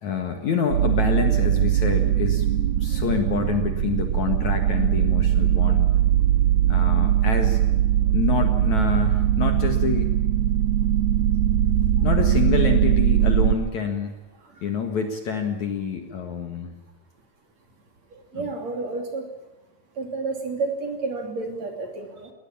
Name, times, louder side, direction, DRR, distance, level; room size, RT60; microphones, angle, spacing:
voice 1, 0.0-2.4 2.8-5.9 6.7-7.6 8.1-10.1 12.0-14.1 14.6-16.7 18.3-18.5, left 6 dB, 55° left, 5 dB, 2.6 m, -27 dB
sound 1, 0.7-13.6, right 11 dB, 65° right, 2.2 m, -21 dB
voice 2, 18.1-19.2 20.0-22.3, right 3 dB, 45° right, 4 dB, 3.8 m, -31 dB
20.0 x 20.0 x 8.7 m, 1.2 s
omnidirectional pair, 4.8 m